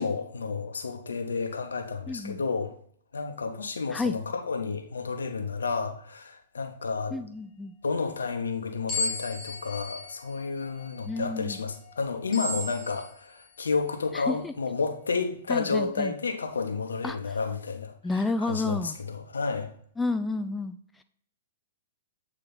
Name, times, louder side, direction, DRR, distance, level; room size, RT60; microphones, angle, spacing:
voice 1, 0.0-2.7 3.1-7.2 7.8-17.9 18.4-19.7, left 4 dB, 75° left, 0.9 m, -31 dB
voice 2, 2.1-2.4 3.9-4.2 7.1-7.7 11.1-11.6 14.1-14.5 15.5-16.1 17.0-17.4 18.0-19.0 20.0-21.0, left 3 dB, 10° left, 0.3 m, -31 dB
sound 1, 8.9-13.7, left 2 dB, 25° left, 1.6 m, -36 dB
8.4 x 3.1 x 3.9 m
figure-of-eight pair, 115°, 0 cm